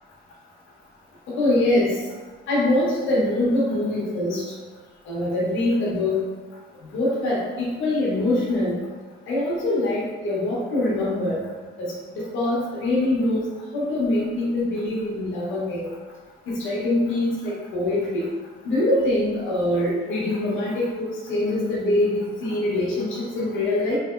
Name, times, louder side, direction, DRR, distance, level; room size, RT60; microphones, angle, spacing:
voice 1, 1.3-2.0 2.5-4.4 5.1-6.2 6.9-8.8 9.3-11.4 11.8-13.4 13.7-15.9 16.5-18.3 18.6-24.0, left 1 dB, 80° left, -6 dB, 0.9 m, -24 dB
3.3 x 2.8 x 2.4 m, 1.3 s
cardioid pair, 90°, 20 cm